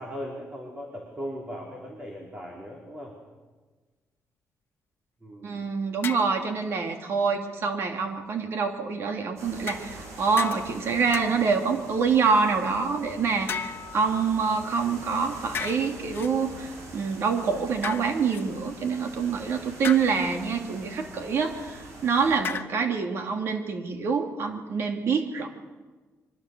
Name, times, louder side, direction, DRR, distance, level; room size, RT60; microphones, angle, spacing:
voice 1, 0.0-3.1 5.2-5.7, equal, 20° right, -1 dB, 3.6 m, -38 dB
voice 2, 5.4-25.5, right 5 dB, 55° right, 4 dB, 2.6 m, -26 dB
sound 1, 6.0-6.4 9.7-10.1 10.4-10.8 11.1-11.6 13.5-14.6 15.5-16.3 17.8-18.4 19.8-20.3 22.4-22.7, left 7 dB, 45° left, 1.2 m, -35 dB
sound 2, 9.4-22.4, right 2 dB, 75° right, 6.3 m, -44 dB
24.5 x 23.0 x 6.8 m, 1.3 s
wide cardioid pair, 175°, 5 cm